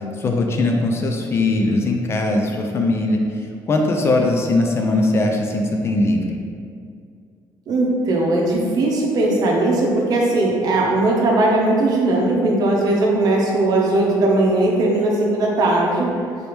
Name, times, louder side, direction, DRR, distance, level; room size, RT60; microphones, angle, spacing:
voice 1, 0.2-3.2 3.7-6.4, left 2 dB, 35° left, 2 dB, 0.4 m, -20 dB
voice 2, 7.7-16.1, right 2 dB, 55° right, -2 dB, 0.8 m, -18 dB
4.1 x 3.3 x 3.0 m, 2.3 s
cardioid pair, 135°, 8 cm